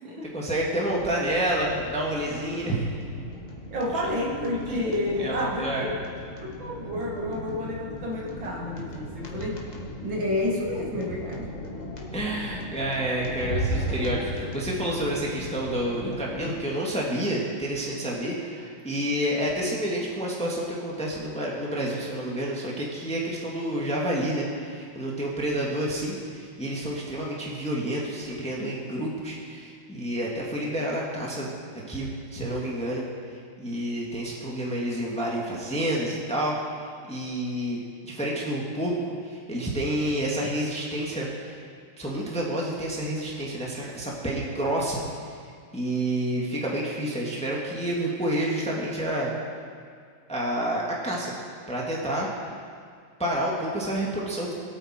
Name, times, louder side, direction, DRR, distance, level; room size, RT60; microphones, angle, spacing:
voice 1, 0.2-2.8 4.7-4.8 5.2-5.9 12.1-33.0 33.6-36.5 37.0-41.6 42.0-45.0 45.7-49.3 50.3-51.3 51.7-52.4 53.2-54.5, right 1 dB, 5° left, -3 dB, 1.7 m, -29 dB
sound 1, 0.9-16.5, equal, 25° left, 1.3 m, -36 dB
voice 2, 3.7-5.9 6.4-9.6 10.0-11.5, left 1 dB, 60° right, -2 dB, 2.5 m, -30 dB
21.5 x 9.0 x 4.4 m, 2.2 s
omnidirectional pair, 2.4 m